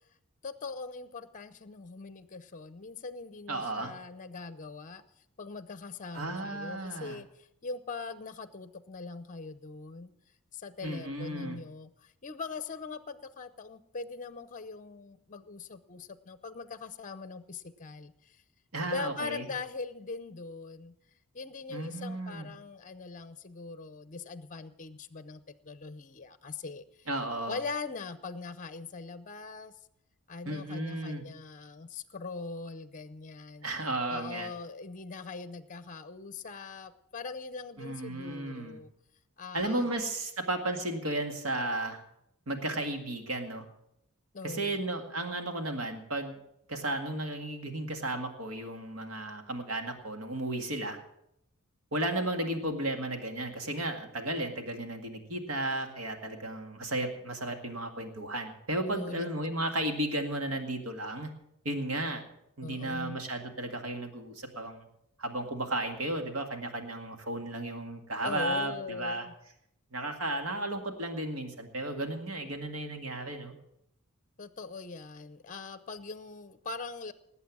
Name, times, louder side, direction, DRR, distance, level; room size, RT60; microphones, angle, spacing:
voice 1, 0.4-5.0 5.4-10.1 10.5-18.4 18.9-20.9 21.3-27.1 27.5-29.7 30.3-33.7 34.1-38.9 39.4-39.9 44.3-44.8 58.8-59.3 62.6-63.2 68.2-69.3 74.4-77.1, left 4 dB, 35° left, 14 dB, 0.7 m, -41 dB
voice 2, 3.5-3.9 6.1-7.2 10.8-11.6 18.7-19.5 21.7-22.5 27.1-27.6 30.5-31.2 33.6-34.5 37.8-38.8 39.5-42.0 42.5-43.6 44.4-46.4 46.7-51.0 51.9-61.3 61.6-62.2 62.6-64.9 65.2-69.3 69.9-73.5, right 1 dB, 65° right, 5 dB, 2.0 m, -34 dB
19.0 x 8.2 x 6.2 m, 0.79 s
head